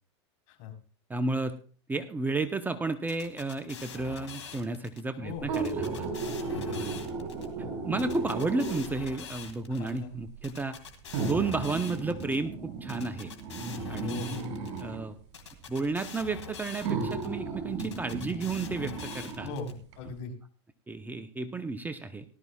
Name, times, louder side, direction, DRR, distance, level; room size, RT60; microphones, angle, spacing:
voice 1, 1.1-1.6 1.9-6.1 6.6-6.9 7.8-10.8 11.2-13.3 13.9-14.2 14.8-15.2 15.7-19.5 20.9-22.2, right 3 dB, 10° right, 9 dB, 0.8 m, -32 dB
sound 1, 3.1-5.0 5.5-7.5 8.0-9.9 10.4-12.4 12.9-14.8 15.3-17.3 17.8-19.7, left 6 dB, 85° left, 2.2 m, -44 dB
voice 2, 5.2-5.5 6.2-7.0 9.7-10.2 14.0-14.5 19.4-20.3, left 4 dB, 55° left, 2 dB, 4.2 m, -40 dB
sound 2, 5.4-9.0 10.0-10.1 11.1-15.0 16.1-16.2 16.8-19.5 19.9-20.0, right 4 dB, 50° right, 5.7 m, -35 dB
18.5 x 12.5 x 2.4 m, 0.39 s
hypercardioid pair, 105°, 15 cm